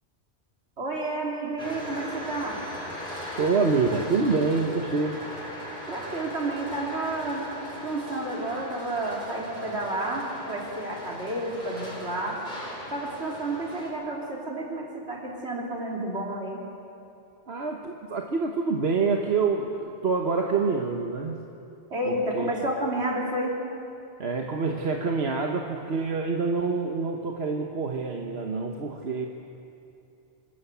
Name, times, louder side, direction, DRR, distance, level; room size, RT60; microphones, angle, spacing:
voice 1, 0.8-2.6 5.9-7.5 7.8-12.4 12.9-16.6 21.9-23.6, right 1 dB, 90° right, -1 dB, 3.6 m, -30 dB
sound 1, 1.6-13.9, equal, 50° left, 3.9 m, -39 dB
voice 2, 3.4-5.2 17.5-21.4 22.1-22.5 24.2-29.3, right 4 dB, 70° right, 2 dB, 1.5 m, -26 dB
26.5 x 13.0 x 8.2 m, 2.7 s
omnidirectional pair, 1.1 m